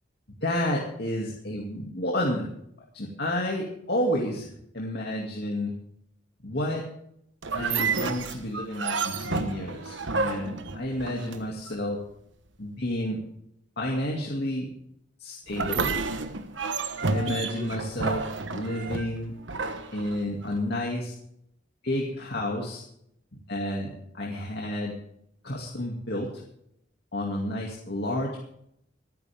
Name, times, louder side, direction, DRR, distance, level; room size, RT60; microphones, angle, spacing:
voice 1, 0.4-2.5 2.9-4.5 4.7-5.7 6.4-6.8 7.5-12.0 12.6-13.2 13.8-14.7 15.2-15.9 17.1-18.2 18.5-19.3 19.9-21.1 21.8-22.8 23.5-24.9 25.4-26.3 27.1-28.3, left 1 dB, 60° left, -2 dB, 2.4 m, -30 dB
sound 1, 7.4-11.7 15.5-20.6, right 4 dB, 80° right, 1.2 m, -30 dB
26.0 x 9.4 x 3.6 m, 0.75 s
head